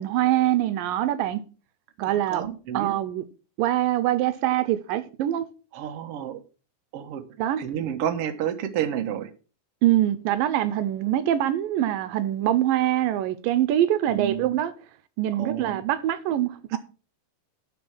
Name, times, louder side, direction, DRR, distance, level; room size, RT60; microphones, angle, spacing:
voice 1, 0.0-1.4 2.0-2.4 2.7-3.2 3.6-5.5 7.4-7.6 9.8-14.7 15.2-16.8, right 13 dB, 80° right, 2.4 m, -24 dB
voice 2, 2.1-2.9 5.7-6.4 6.9-7.2 7.6-9.3 14.1-14.6 15.4-15.8 16.7-16.8, right 10 dB, 55° right, 1.9 m, -30 dB
11.0 x 6.2 x 6.0 m
omnidirectional pair, 4.0 m